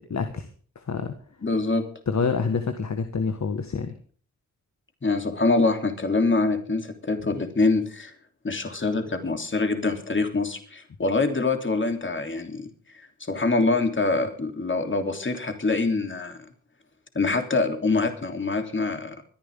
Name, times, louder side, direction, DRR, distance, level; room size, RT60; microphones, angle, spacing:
voice 1, 0.1-0.5 0.7-1.1 2.1-3.9, left 5 dB, 55° left, 8 dB, 1.7 m, -27 dB
voice 2, 1.4-1.8 5.0-8.1 8.4-16.4 17.1-19.2, left 3 dB, 35° left, 6 dB, 3.2 m, -25 dB
24.5 x 10.5 x 3.7 m, 0.42 s
supercardioid pair, 45°, 34 cm